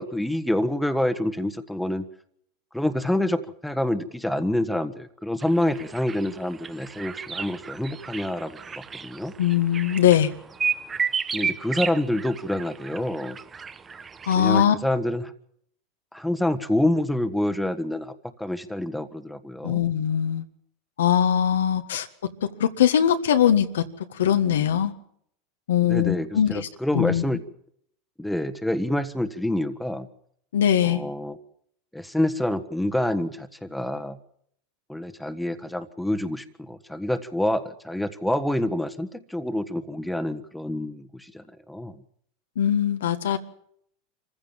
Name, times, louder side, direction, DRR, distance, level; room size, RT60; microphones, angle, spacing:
voice 1, 0.0-2.1 2.7-9.3 11.3-13.4 14.3-15.3 16.1-18.1 18.4-19.8 25.8-27.4 28.2-30.1 30.8-31.4 31.9-34.2 34.9-42.0, left 1 dB, ahead, 9 dB, 1.5 m, -27 dB
sound 1, 5.4-14.6, right 6 dB, 25° right, 1.1 m, -33 dB
voice 2, 9.4-10.3 14.3-14.7 19.6-20.4 21.0-22.1 22.4-23.8 24.1-24.9 25.7-26.7 26.9-27.2 30.5-31.0 42.5-43.4, left 9 dB, 90° left, 8 dB, 1.6 m, -21 dB
25.5 x 15.0 x 7.3 m, 0.67 s
hypercardioid pair, 110°, 0 cm